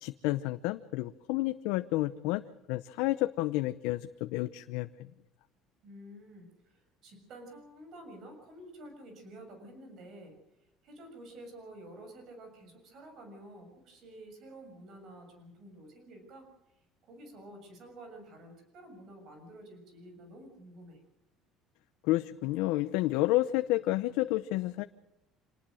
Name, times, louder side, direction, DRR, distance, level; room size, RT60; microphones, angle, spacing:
voice 1, 0.0-2.4 2.7-4.9 22.0-24.8, left 17 dB, 75° left, 10 dB, 0.8 m, -30 dB
voice 2, 5.8-10.4 10.8-16.5 16.7-21.0, right 1 dB, 40° right, 5 dB, 6.7 m, -50 dB
26.5 x 19.5 x 6.4 m, 0.91 s
cardioid pair, 180°, 0 cm